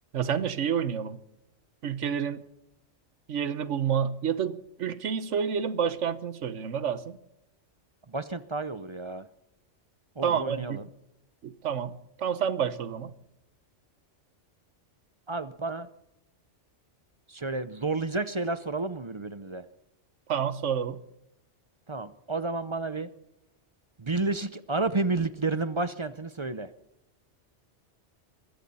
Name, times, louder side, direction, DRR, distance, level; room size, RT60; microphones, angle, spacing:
voice 1, 0.1-1.2 1.8-2.4 3.3-7.2 10.2-10.8 11.4-13.1 20.3-21.0, right 7 dB, 85° right, 14 dB, 1.3 m, -29 dB
voice 2, 8.1-9.3 10.2-10.8 15.3-15.9 17.3-19.7 21.9-23.1 24.0-26.7, right 3 dB, 30° right, 13 dB, 0.6 m, -31 dB
22.0 x 15.5 x 4.2 m, 0.84 s
omnidirectional pair, 1.2 m